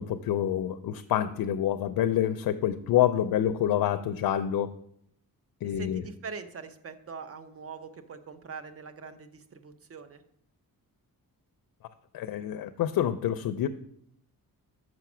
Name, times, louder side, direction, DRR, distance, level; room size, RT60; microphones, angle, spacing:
voice 1, 0.0-4.7 5.6-6.0 12.1-13.7, left 11 dB, 80° left, 10 dB, 0.5 m, -27 dB
voice 2, 5.6-10.2, right 5 dB, 40° right, 10 dB, 0.7 m, -43 dB
6.2 x 5.8 x 6.0 m, 0.70 s
wide cardioid pair, 145°, 35 cm